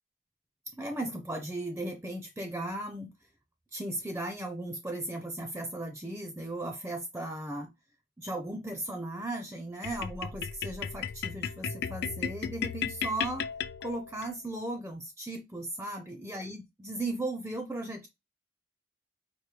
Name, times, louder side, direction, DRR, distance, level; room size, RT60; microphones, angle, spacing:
voice 1, 0.7-3.1 3.7-7.7 8.2-13.5 13.8-18.1, right 1 dB, 10° right, 0.5 m, -36 dB
sound 1, 9.8-14.3, left 7 dB, 60° left, 0.3 m, -35 dB
4.6 x 2.6 x 3.2 m
head